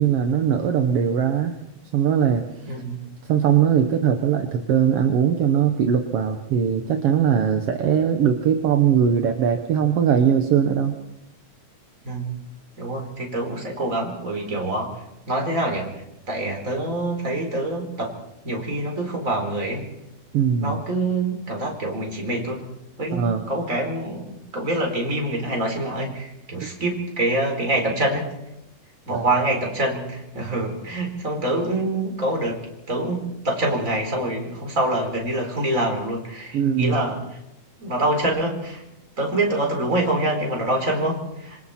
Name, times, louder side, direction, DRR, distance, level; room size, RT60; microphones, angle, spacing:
voice 1, 0.0-1.5 1.9-2.7 3.3-11.0 20.3-20.8 23.1-23.4 29.1-29.2 36.5-37.0, right 8 dB, 60° right, 5 dB, 1.7 m, -20 dB
voice 2, 2.6-3.0 12.0-12.3 12.8-14.9 15.3-18.1 18.4-19.9 20.6-22.7 23.0-28.3 29.1-32.6 32.9-37.2 37.8-38.8 39.2-41.6, right 1 dB, 25° right, 1 dB, 4.5 m, -25 dB
26.5 x 25.0 x 4.4 m, 0.88 s
omnidirectional pair, 3.8 m